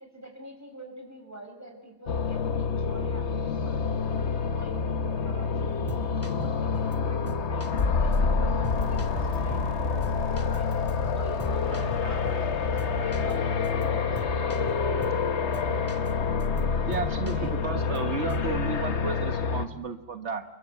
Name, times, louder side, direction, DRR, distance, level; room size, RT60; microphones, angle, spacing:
voice 1, 0.0-4.2 4.5-7.7 8.0-10.7 11.1-14.3 17.3-17.5, right 1 dB, 15° right, 3 dB, 5.9 m, -46 dB
sound 1, 2.1-19.7, left 5 dB, 80° left, 1.5 m, -27 dB
sound 2, 5.7-7.0 7.3-7.8 8.1-8.2 8.6-9.8 10.0-12.5 12.8-13.4 13.6-13.9 14.2-15.2 15.5-16.1 16.4-18.0 18.3-18.6, equal, 10° left, 2.2 m, -42 dB
voice 2, 16.9-20.4, right 4 dB, 85° right, 7 dB, 1.6 m, -33 dB
29.0 x 22.5 x 7.9 m, 1.0 s
omnidirectional pair, 1.1 m